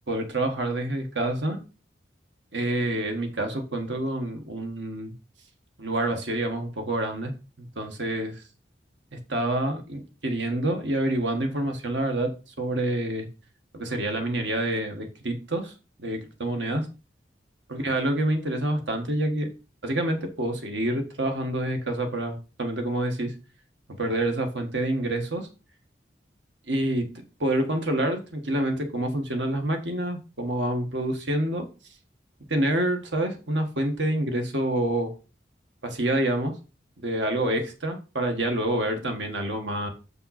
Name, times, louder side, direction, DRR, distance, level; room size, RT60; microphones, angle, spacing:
voice 1, 0.1-1.6 2.5-5.1 5.8-8.4 9.1-12.3 12.6-13.3 13.7-15.7 16.0-16.9 17.7-19.5 19.8-23.3 24.0-25.5 26.7-31.7 32.5-35.1 35.8-36.5 37.0-39.9, right 1 dB, 80° right, 5 dB, 1.6 m, -27 dB
7.0 x 5.5 x 4.2 m, 0.33 s
head